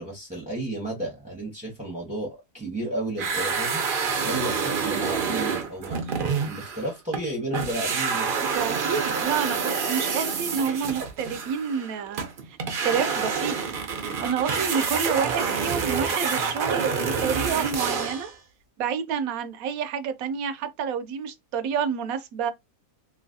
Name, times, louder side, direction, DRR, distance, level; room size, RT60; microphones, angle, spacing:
voice 1, 0.0-8.3, right 1 dB, 5° right, 0.7 m, -33 dB
sound 1, 3.2-7.3 7.5-18.3, right 5 dB, 55° right, 0.6 m, -27 dB
voice 2, 8.5-12.2 12.5-13.6 14.2-18.3 18.8-22.5, right 7 dB, 70° right, 1.0 m, -29 dB
3.1 x 2.9 x 2.6 m
omnidirectional pair, 1.7 m